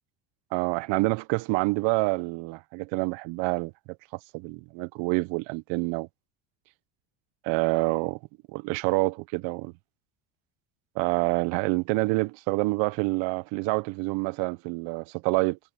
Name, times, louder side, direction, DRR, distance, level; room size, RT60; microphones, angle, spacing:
voice 1, 0.5-3.7 4.3-6.1 7.4-8.2 8.5-9.7 11.0-15.6, right 25 dB, 75° right, 0.9 m, -27 dB
supercardioid pair, 100°, 46 cm